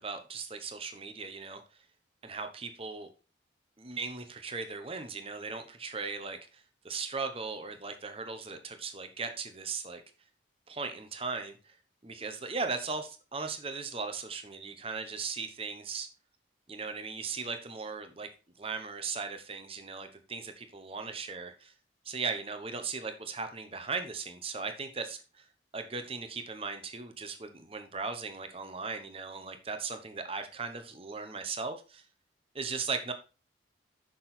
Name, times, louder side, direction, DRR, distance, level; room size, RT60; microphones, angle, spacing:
voice 1, 0.0-1.6 2.2-3.1 3.8-10.0 10.7-11.7 12.0-16.1 16.7-18.3 18.6-21.7 22.0-25.4 25.7-32.0 32.5-33.1, right 4 dB, 30° right, 7 dB, 0.9 m, -38 dB
6.2 x 6.0 x 4.3 m, 0.33 s
head